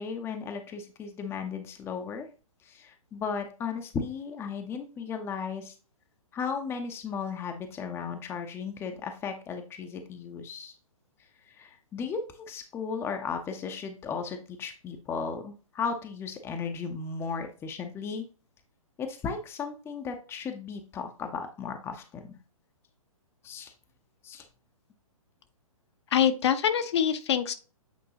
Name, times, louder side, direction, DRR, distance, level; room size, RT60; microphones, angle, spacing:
voice 1, 0.0-2.3 2.6-5.7 6.3-10.7 11.4-18.2 19.0-22.4 23.4-23.7 24.2-24.4, left 5 dB, 15° left, 6 dB, 0.8 m, -35 dB
voice 2, 26.1-27.5, left 9 dB, 50° left, 8 dB, 0.9 m, -24 dB
8.8 x 4.6 x 2.9 m, 0.33 s
figure-of-eight pair, 125°, 18 cm